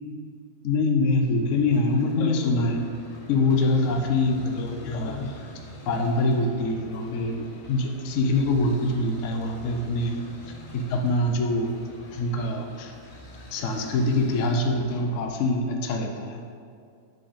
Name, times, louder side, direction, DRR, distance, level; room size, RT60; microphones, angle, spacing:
voice 1, 0.6-2.8 3.3-5.5 5.9-10.2 10.5-11.8 12.1-12.9 13.5-16.4, left 2 dB, 65° left, 2 dB, 0.9 m, -24 dB
sound 1, 1.2-15.6, equal, 35° left, 0.7 m, -46 dB
7.7 x 3.7 x 5.1 m, 2.3 s
omnidirectional pair, 1.6 m